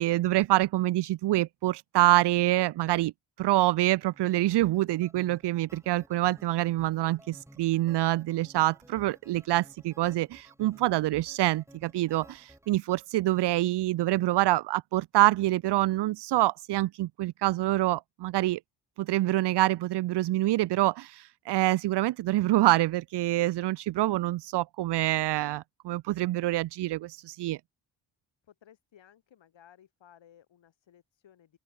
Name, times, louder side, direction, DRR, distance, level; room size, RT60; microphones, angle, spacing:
voice 1, 0.0-3.1 3.4-18.6 19.0-27.6, right 16 dB, 60° right, 0.5 m, -26 dB
sound 1, 4.1-12.7, right 1 dB, 5° right, 5.0 m, -55 dB
voice 2, 28.4-31.6, left 10 dB, 70° left, 3.3 m, -58 dB
open air
cardioid pair, 75°, 46 cm